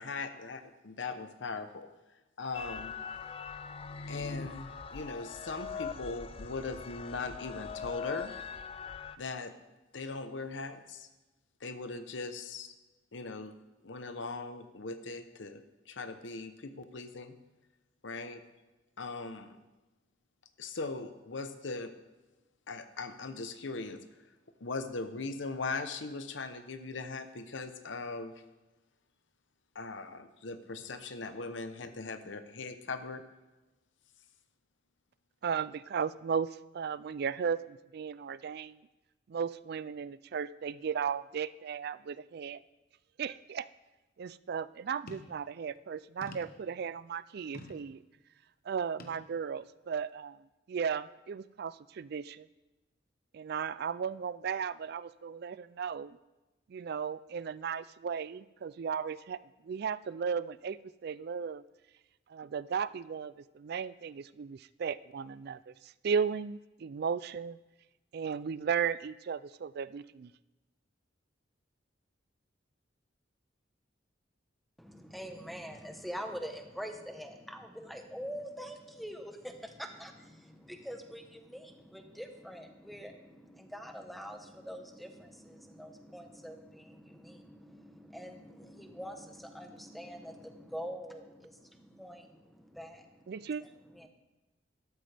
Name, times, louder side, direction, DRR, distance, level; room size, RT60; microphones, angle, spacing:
voice 1, 0.0-1.9 2.4-2.9 4.1-8.4 9.2-9.5 9.9-11.1 11.6-12.7 13.1-13.5 13.8-17.4 18.0-18.4 19.0-19.6 20.6-21.9 22.7-24.0 24.6-28.4 29.7-33.2, left 3 dB, 75° left, 9 dB, 0.9 m, -39 dB
sound 1, 2.5-9.2, left 5 dB, 30° left, 0.4 m, -41 dB
voice 2, 35.4-38.8 39.3-42.6 43.2-43.7 44.2-48.0 48.6-52.5 53.3-56.2 56.7-61.6 62.3-67.6 68.1-70.3 93.3-93.6, right 6 dB, 55° right, 17 dB, 0.4 m, -35 dB
sound 2, 45.1-45.4 46.2-46.7 47.5-47.9 49.0-49.2 49.9-50.0, left 2 dB, 50° left, 1.1 m, -48 dB
voice 3, 74.8-93.3 93.6-94.1, equal, ahead, 5 dB, 1.0 m, -45 dB
12.5 x 12.5 x 3.4 m, 1.1 s
head